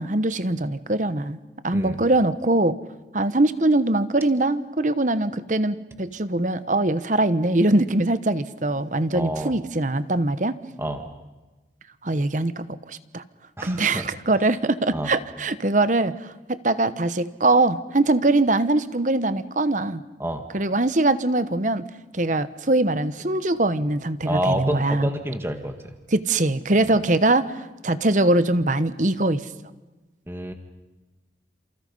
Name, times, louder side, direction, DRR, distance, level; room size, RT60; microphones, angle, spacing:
voice 1, 0.0-1.4 1.6-2.8 3.1-10.6 12.0-13.2 13.6-20.0 20.5-21.8 22.1-25.1 26.1-27.5 27.8-29.4, right 2 dB, 40° right, 13 dB, 1.0 m, -22 dB
voice 2, 9.1-9.5 10.8-11.0 13.6-14.0 14.9-15.1 20.2-20.4 24.3-25.7 26.8-27.0 30.3-30.5, right 1 dB, 15° right, 6 dB, 1.9 m, -28 dB
29.5 x 27.5 x 5.5 m, 1.1 s
head